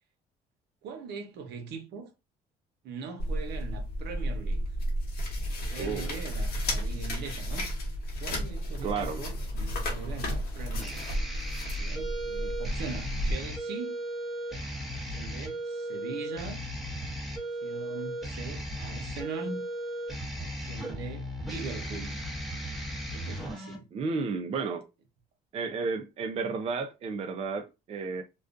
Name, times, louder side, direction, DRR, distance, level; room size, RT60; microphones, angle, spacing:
voice 1, 0.8-2.1 2.8-4.6 5.4-7.7 8.2-11.1 11.8-14.0 14.9-16.7 17.3-19.6 20.4-22.2 23.1-23.9, right 5 dB, 75° right, 0.7 m, -41 dB
sound 1, 3.2-13.3, equal, 70° left, 1.0 m, -32 dB
voice 2, 5.8-6.2 8.8-9.2 23.9-24.9 25.5-28.2, right 4 dB, 35° right, 0.4 m, -32 dB
sound 2, 9.3-23.8, equal, ahead, 0.8 m, -37 dB
2.4 x 2.2 x 2.5 m
cardioid pair, 110°, 17 cm